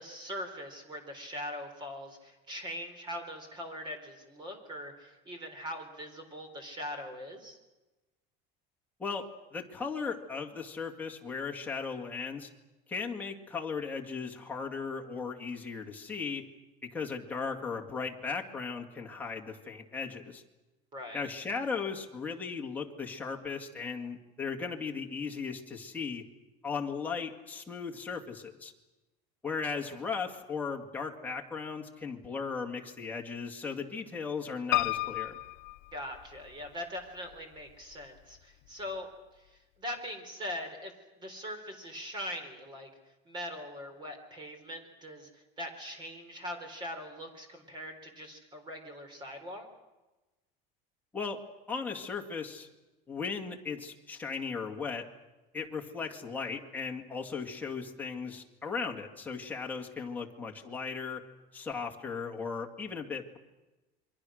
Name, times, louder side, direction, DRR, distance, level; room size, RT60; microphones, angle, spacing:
voice 1, 0.0-7.6 20.9-21.2 35.9-39.1 39.4-40.9 41.2-42.9 43.3-49.6, equal, 25° right, 7 dB, 4.0 m, -41 dB
voice 2, 9.0-12.5 12.9-16.4 16.8-20.4 21.1-26.3 26.6-28.7 29.4-35.4 51.1-51.4 51.7-52.7 53.1-55.1 55.5-61.2 61.5-63.4, left 5 dB, 10° left, 0 dB, 2.1 m, -37 dB
Piano, 34.7-36.7 37.3-38.0 38.4-38.5 38.7-38.8, left 22 dB, 75° left, 0.8 m, -33 dB
28.0 x 23.5 x 6.5 m, 1.1 s
cardioid pair, 170°, 20 cm